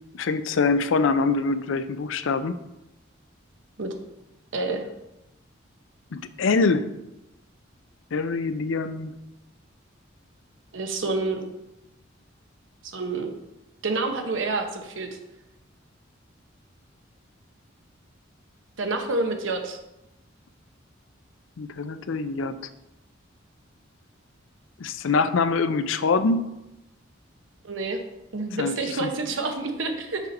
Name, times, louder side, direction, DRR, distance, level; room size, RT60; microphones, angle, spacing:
voice 1, 0.1-2.6 6.1-6.9 8.1-9.1 21.6-22.5 24.8-26.4 28.6-29.1, left 4 dB, 70° left, 11 dB, 0.5 m, -24 dB
voice 2, 4.5-4.9 10.7-11.5 12.9-13.3 13.8-15.1 18.8-19.8 27.6-28.0 28.3-30.2, right 3 dB, 70° right, 5 dB, 0.9 m, -28 dB
6.1 x 4.3 x 5.3 m, 0.92 s
head